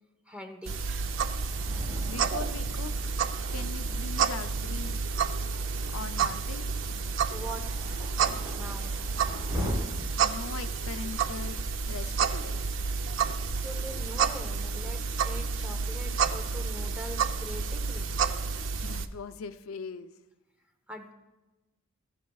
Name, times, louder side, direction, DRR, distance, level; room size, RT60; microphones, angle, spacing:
voice 1, 0.3-0.8 7.3-7.8 8.5-8.9 13.6-18.1 20.9-21.1, equal, 5° right, 4 dB, 0.9 m, -42 dB
sound 1, 0.7-19.1, right 5 dB, 65° right, 0.5 m, -30 dB
Thunder, 1.1-9.7, left 1 dB, 20° right, 3.3 m, -42 dB
voice 2, 2.1-3.1 3.5-5.0 5.9-6.7 10.2-12.6 18.5-20.1, left 5 dB, 90° left, 10 dB, 0.5 m, -41 dB
14.0 x 14.0 x 2.3 m, 1.1 s
head